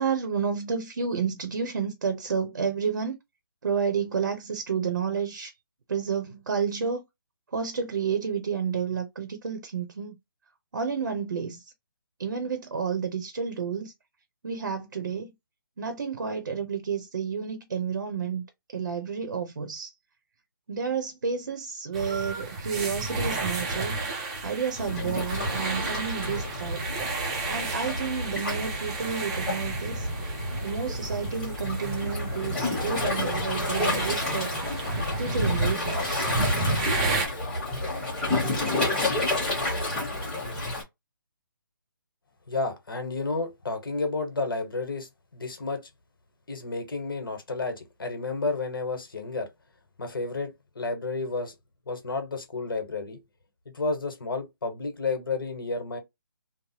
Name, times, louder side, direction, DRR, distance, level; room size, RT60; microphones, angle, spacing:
voice 1, 0.0-3.2 3.6-5.5 5.9-7.0 7.5-10.2 10.7-11.6 12.2-13.9 14.4-15.3 15.8-18.4 18.7-19.9 20.7-24.0 24.4-26.9 27.5-30.1 30.6-34.5 35.2-36.3, right 6 dB, 65° right, 0.8 m, -30 dB
sound 1, 21.9-37.3, right 2 dB, 15° right, 0.5 m, -32 dB
Waves surf, 24.8-40.8, left 2 dB, 5° left, 1.1 m, -30 dB
voice 2, 42.5-45.8 46.5-49.5 50.0-51.5 51.9-53.2 53.6-56.0, left 3 dB, 70° left, 1.3 m, -31 dB
3.2 x 2.1 x 2.8 m
hypercardioid pair, 170°, 12 cm